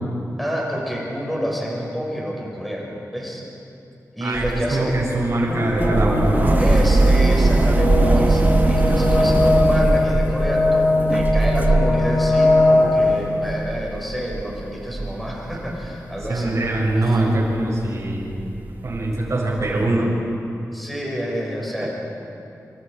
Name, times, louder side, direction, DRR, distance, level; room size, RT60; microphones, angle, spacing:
voice 1, 0.4-2.9 3.1-3.4 4.1-5.0 6.6-16.6 17.0-17.2 20.7-21.9, equal, ahead, -3 dB, 6.3 m, -28 dB
voice 2, 4.2-6.6 16.3-18.3 18.8-20.1, right 2 dB, 55° right, -3 dB, 7.0 m, -22 dB
sound 1, 4.3-16.0 16.2-19.9, right 2 dB, 30° right, 1.2 m, -21 dB
sound 2, 5.5-13.2, left 2 dB, 35° left, 5.5 m, -20 dB
27.5 x 27.5 x 5.2 m, 2.7 s
wide cardioid pair, 140°, 6 cm